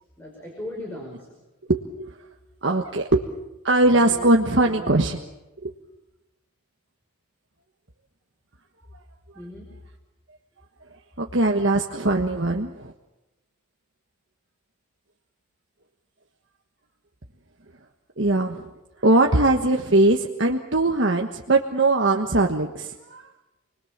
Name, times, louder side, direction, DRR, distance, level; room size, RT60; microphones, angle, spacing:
voice 1, 0.2-1.4 3.9-5.1 9.3-9.7, left 1 dB, 10° left, -1 dB, 5.4 m, -38 dB
voice 2, 1.7-2.2 2.6-3.3 3.6-5.2 5.6-5.7 11.2-12.9 18.2-18.7 19.0-23.2, right 2 dB, 60° right, 2 dB, 1.4 m, -21 dB
29.0 x 21.5 x 7.4 m, 0.99 s
head